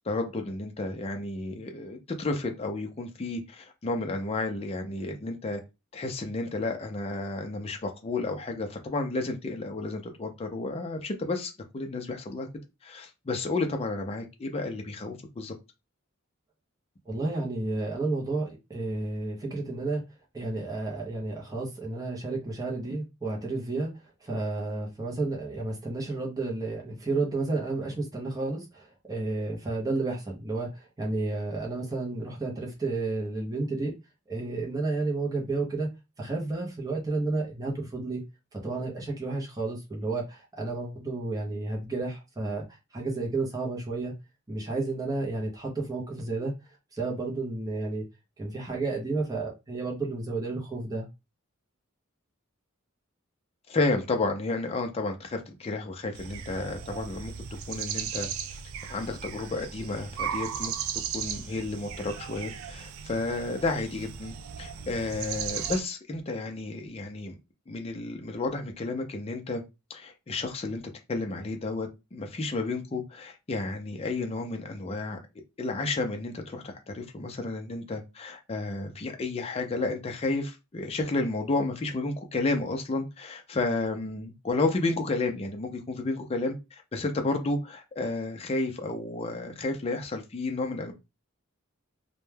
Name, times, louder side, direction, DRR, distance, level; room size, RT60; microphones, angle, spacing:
voice 1, 0.1-5.6 5.9-12.5 12.8-15.5 53.7-57.3 57.7-58.3 58.9-60.7 61.1-67.4 67.7-69.6 69.9-70.8 71.1-75.2 75.6-90.9, left 2 dB, 30° left, 0.4 m, -31 dB
voice 2, 17.1-20.0 20.3-23.9 24.2-33.9 34.3-35.9 36.2-38.2 38.5-42.6 42.9-44.1 44.5-46.5 46.9-48.0 48.4-51.1, right 3 dB, 15° right, 0.6 m, -31 dB
sound 1, 56.1-65.8, right 8 dB, 75° right, 0.3 m, -36 dB
2.1 x 2.1 x 3.2 m
head